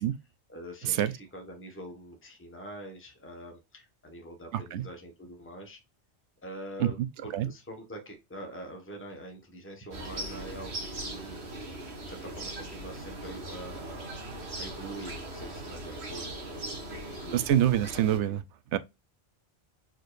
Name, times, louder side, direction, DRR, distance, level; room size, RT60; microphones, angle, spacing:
voice 1, 0.5-5.8 6.4-7.0 7.2-11.4 12.1-17.4, right 1 dB, 10° left, 1.2 m, -45 dB
voice 2, 4.5-4.8 6.8-7.1 7.3-7.5 17.3-18.4 18.7-18.8, right 11 dB, 80° right, 0.9 m, -26 dB
sound 1, 9.9-18.2, right 1 dB, 65° right, 1.7 m, -39 dB
4.5 x 4.5 x 2.5 m
omnidirectional pair, 1.2 m